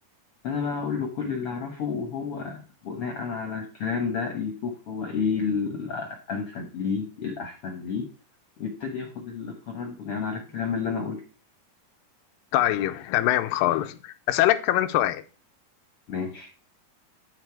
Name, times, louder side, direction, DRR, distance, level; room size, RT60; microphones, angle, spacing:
voice 1, 0.4-8.0 8.6-11.2 16.1-16.5, left 5 dB, 60° left, 1.6 m, -30 dB
voice 2, 12.5-14.0 14.3-15.2, left 14 dB, 85° left, 2.4 m, -23 dB
10.5 x 4.4 x 4.6 m
omnidirectional pair, 4.0 m